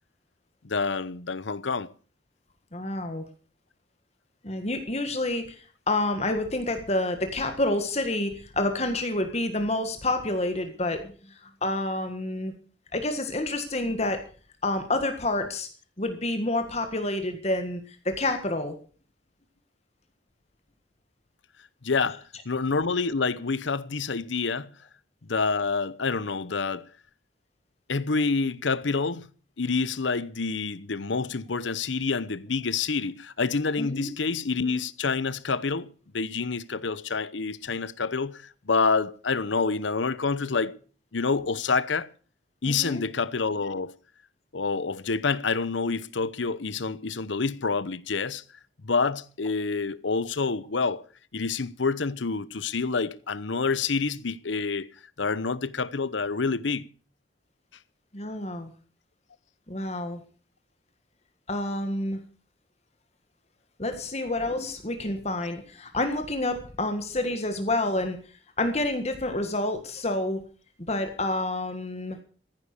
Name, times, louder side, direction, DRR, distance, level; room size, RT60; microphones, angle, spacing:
voice 1, 0.6-1.9 21.8-24.7 25.2-26.9 27.9-29.3 29.6-35.9 36.1-40.8 41.1-42.1 42.6-43.9 44.5-48.4 48.8-51.0 51.3-54.9 55.2-56.9, left 4 dB, 85° left, 0.8 m, -27 dB
voice 2, 2.7-3.2 4.4-12.5 12.9-14.2 14.6-15.7 16.0-18.8 33.8-34.1 42.7-43.0 58.1-58.7 59.7-60.2 61.5-62.2 63.8-68.2 68.6-70.4 70.9-72.2, left 2 dB, 35° left, 1.6 m, -28 dB
14.5 x 10.5 x 6.6 m
head